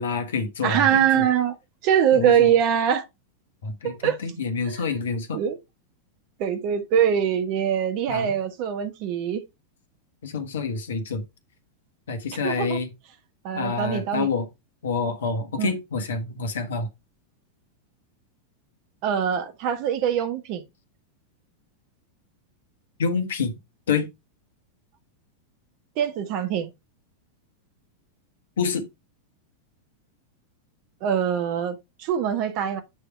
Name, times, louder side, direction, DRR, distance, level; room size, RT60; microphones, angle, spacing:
voice 1, 0.0-1.3 2.1-2.5 3.6-5.4 8.1-8.3 10.2-11.2 12.1-12.9 13.5-14.5 14.8-16.9 23.0-23.5 23.9-24.1 28.6-28.9, left 4 dB, 65° left, 1.3 m, -27 dB
voice 2, 0.6-1.5 1.8-3.0 3.8-4.2 4.7-4.9 5.3-5.6 6.4-9.4 12.4-12.8 13.4-14.3 15.6-15.7 19.0-20.6 26.0-26.7 31.0-32.8, right 9 dB, 45° right, 1.3 m, -23 dB
8.3 x 3.4 x 4.6 m
figure-of-eight pair, 90°, 0 cm